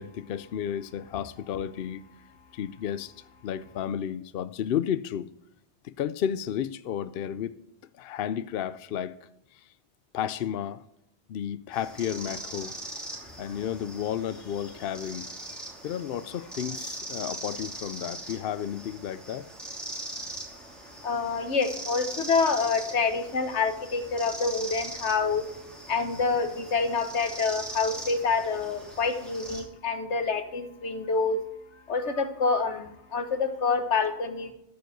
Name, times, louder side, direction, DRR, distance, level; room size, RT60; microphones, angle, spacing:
voice 1, 0.0-2.0 2.5-3.1 3.4-5.3 5.8-7.6 8.0-9.1 9.5-9.6 10.1-10.8 11.3-12.8 13.1-15.3 15.8-19.5, left 9 dB, 65° left, 0.7 m, -32 dB
sound 1, 11.7-29.6, right 1 dB, ahead, 2.7 m, -41 dB
voice 2, 21.0-25.4 25.9-31.4 31.9-34.5, left 4 dB, 90° left, 1.5 m, -27 dB
13.5 x 5.4 x 7.9 m
omnidirectional pair, 1.1 m